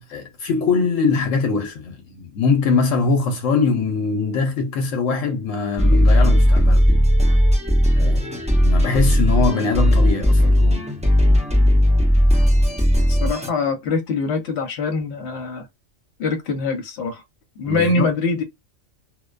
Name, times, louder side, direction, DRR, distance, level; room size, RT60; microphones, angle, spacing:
voice 1, 0.0-6.9 7.9-10.9 17.7-18.1, left 4 dB, 80° left, 1.0 m, -22 dB
sound 1, 5.8-13.5, equal, 10° right, 0.4 m, -16 dB
voice 2, 13.0-15.7 16.2-17.2 17.6-18.4, left 3 dB, 60° left, 1.0 m, -23 dB
2.4 x 2.1 x 2.4 m
omnidirectional pair, 1.3 m